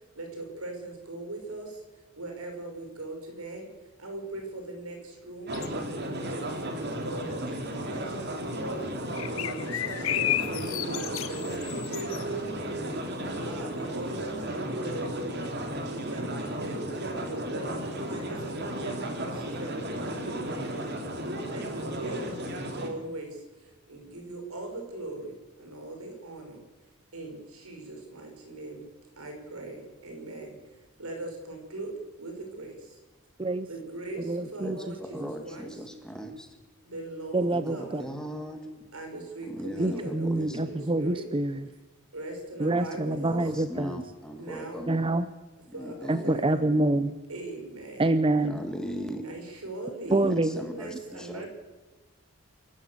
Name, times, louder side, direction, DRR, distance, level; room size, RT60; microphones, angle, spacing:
voice 1, 0.1-6.6 7.0-26.6 27.1-28.9 29.2-33.0 33.6-35.2 35.4-35.7 36.8-38.1 38.9-41.3 42.1-43.5 44.3-44.9 45.7-46.9 47.3-48.1 49.2-51.5, right 2 dB, 80° right, 3 dB, 5.8 m, -40 dB
sound 1, 5.5-6.8 7.1-7.5 7.9-8.0 8.2-8.6 9.1-13.5 13.8-13.9 14.2-14.3, left 13 dB, 60° left, 0.6 m, -33 dB
sound 2, 5.5-22.9, right 1 dB, 50° right, 3.0 m, -34 dB
voice 2, 34.3-34.9 35.2-35.3 37.3-38.0 39.8-41.7 42.6-44.0 44.9-45.3 46.1-47.1 48.0-48.6 50.1-50.6, right 2 dB, 25° right, 11 dB, 0.6 m, -26 dB
voice 3, 35.0-36.5 37.5-38.9 39.5-40.8 43.3-45.1 45.7-46.4 47.1-47.3 48.4-49.2 50.1-51.4, equal, 5° left, 5 dB, 1.8 m, -38 dB
27.5 x 12.0 x 8.4 m, 1.1 s
head